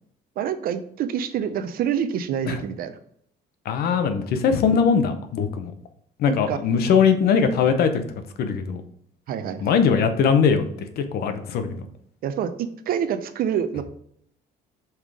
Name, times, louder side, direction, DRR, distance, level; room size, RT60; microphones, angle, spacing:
voice 1, 0.4-3.0 6.3-6.6 9.3-9.8 12.2-13.8, right 8 dB, 60° right, 10 dB, 0.6 m, -27 dB
voice 2, 3.6-5.7 6.2-8.0 8.4-8.8 9.6-10.6 11.0-11.9, left 6 dB, 65° left, 8 dB, 0.8 m, -20 dB
5.6 x 3.7 x 4.8 m, 0.67 s
cardioid pair, 110°, 17 cm